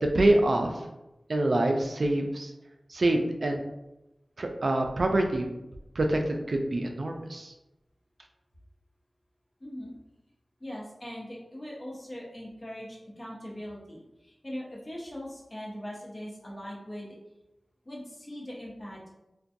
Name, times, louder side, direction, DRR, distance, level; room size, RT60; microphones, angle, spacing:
voice 1, 0.0-0.7 1.3-2.5 2.9-3.6 4.4-5.5 6.0-7.5, right 1 dB, 65° right, 3 dB, 0.3 m, -25 dB
voice 2, 9.6-9.9 10.6-17.2 17.8-19.2, equal, 35° left, -4 dB, 0.8 m, -41 dB
2.5 x 2.2 x 2.5 m, 0.94 s
wide cardioid pair, 75°, 0 cm